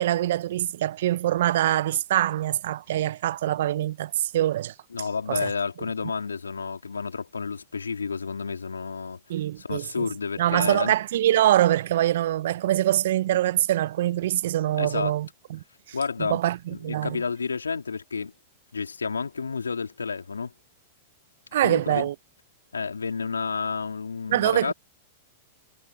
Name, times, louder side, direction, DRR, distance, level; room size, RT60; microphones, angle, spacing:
voice 1, 0.0-4.7 5.3-5.5 9.3-10.0 10.4-15.6 16.2-17.2 21.5-22.1 24.3-24.7, right 13 dB, 65° right, 0.8 m, -24 dB
voice 2, 4.9-10.9 14.8-15.2 15.9-16.4 16.7-18.3 18.7-20.5 21.6-22.1 22.7-24.7, left 5 dB, 85° left, 3.6 m, -30 dB
hypercardioid pair, 100°, 0 cm